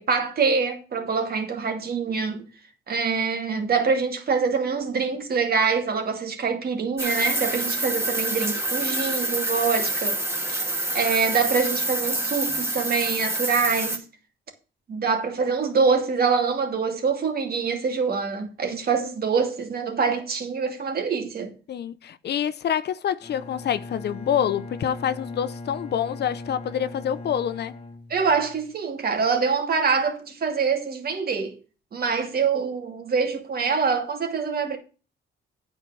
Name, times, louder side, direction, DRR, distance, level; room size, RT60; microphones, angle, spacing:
voice 1, 0.0-2.4 2.9-10.2 10.5-10.6 10.9-14.0 14.9-21.5 28.1-31.5 31.9-34.8, right 5 dB, 50° right, 2.5 m, -25 dB
sound 1, 7.0-14.0, right 2 dB, 15° right, 2.5 m, -27 dB
voice 2, 21.7-27.7, left 9 dB, 55° left, 0.7 m, -27 dB
Bowed string instrument, 23.2-28.7, left 3 dB, 30° left, 1.4 m, -39 dB
9.1 x 4.6 x 7.6 m
cardioid pair, 90°, 20 cm